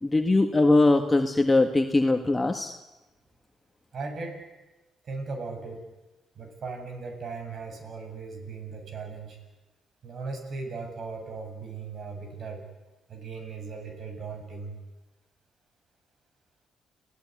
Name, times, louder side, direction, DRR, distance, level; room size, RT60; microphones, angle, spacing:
voice 1, 0.0-2.7, left 2 dB, 15° left, 5 dB, 1.7 m, -21 dB
voice 2, 3.9-4.4 5.0-5.8 6.4-9.4 10.0-12.6 13.1-14.8, right 4 dB, 55° right, 5 dB, 7.8 m, -37 dB
30.0 x 17.5 x 9.7 m, 1.1 s
cardioid pair, 90°, 0 cm